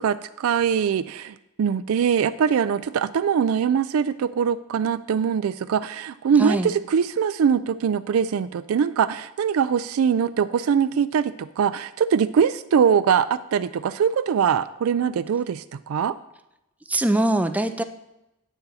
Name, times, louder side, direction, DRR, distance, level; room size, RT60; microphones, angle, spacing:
voice 1, 0.0-16.2, right 7 dB, 85° right, 12 dB, 0.4 m, -22 dB
voice 2, 6.4-6.8 16.9-17.8, right 1 dB, 5° right, 9 dB, 0.4 m, -22 dB
9.4 x 9.1 x 4.1 m, 0.91 s
head